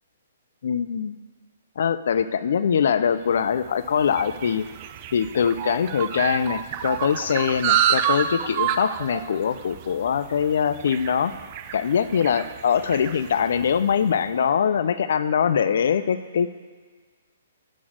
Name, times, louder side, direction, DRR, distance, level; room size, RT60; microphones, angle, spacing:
voice 1, 0.6-1.2 1.8-4.7 5.1-11.3 11.7-16.5, left 7 dB, 55° left, 13 dB, 0.4 m, -23 dB
sound 1, 3.4-14.0, right 10 dB, 25° right, 0.4 m, -29 dB
12.0 x 4.1 x 7.8 m, 1.5 s
hypercardioid pair, 175°, 0 cm